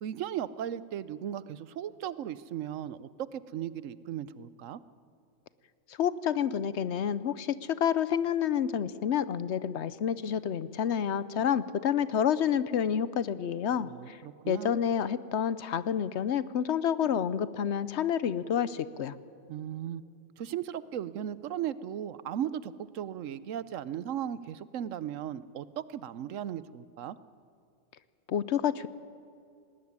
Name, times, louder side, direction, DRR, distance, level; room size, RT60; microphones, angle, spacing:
voice 1, 0.0-4.8 13.8-14.7 19.5-20.0 20.4-27.2, right 10 dB, 85° right, 17 dB, 1.1 m, -37 dB
voice 2, 6.0-14.2 14.5-19.2 28.3-28.9, left 8 dB, 65° left, 16 dB, 1.0 m, -29 dB
19.0 x 19.0 x 9.6 m, 2.4 s
omnidirectional pair, 1.3 m